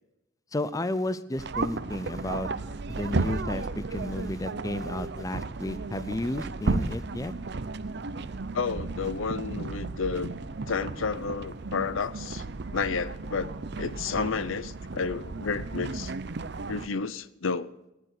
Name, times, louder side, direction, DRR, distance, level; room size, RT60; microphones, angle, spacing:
voice 1, 0.5-2.5 2.9-7.3, left 1 dB, 15° left, 15 dB, 0.5 m, -32 dB
sound 1, 1.4-16.9, right 3 dB, 60° right, 0.7 m, -34 dB
voice 2, 8.5-10.3 10.7-12.4 12.7-13.5 13.8-16.1 16.7-17.7, left 5 dB, 85° left, 17 dB, 0.7 m, -31 dB
15.0 x 10.5 x 6.6 m, 0.93 s
head